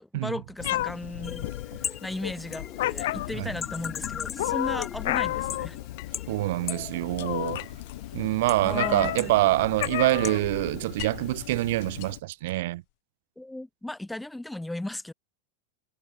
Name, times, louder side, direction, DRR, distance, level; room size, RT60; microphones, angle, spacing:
voice 1, 0.0-5.8 8.6-9.6 13.4-15.1, left 1 dB, 5° left, 0.6 m, -36 dB
Meow, 0.6-12.2, left 16 dB, 70° left, 0.5 m, -33 dB
sound 1, 1.2-12.1, left 8 dB, 25° left, 3.6 m, -41 dB
sound 2, 6.0-6.7 7.6-9.4 9.8-11.4 11.8-12.9, left 40 dB or more, 55° left, 1.4 m, -46 dB
voice 2, 6.3-7.6 8.1-12.8, right 18 dB, 70° right, 0.5 m, -25 dB
supercardioid pair, 135°, 0 cm